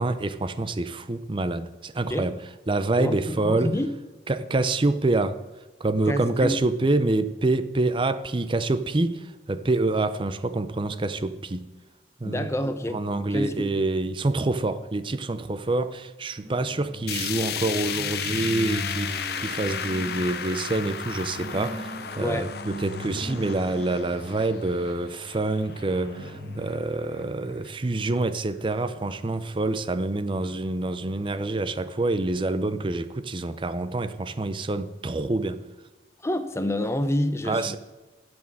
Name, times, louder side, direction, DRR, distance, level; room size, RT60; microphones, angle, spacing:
voice 1, 0.0-2.4 2.7-3.7 4.3-5.4 5.8-11.7 12.2-12.5 12.9-35.6 37.5-37.8, right 2 dB, 30° right, 0.5 m, -26 dB
voice 2, 3.0-3.9 6.1-6.6 12.2-13.0 13.3-13.7 22.2-22.5 36.2-37.8, left 1 dB, 15° left, 0.7 m, -28 dB
sound 1, 16.4-28.1, equal, 85° right, 2.5 m, -39 dB
sound 2, 17.1-27.2 27.6-27.7 28.1-28.2 29.1-29.2, left 8 dB, 60° left, 0.7 m, -34 dB
10.5 x 6.3 x 7.5 m
head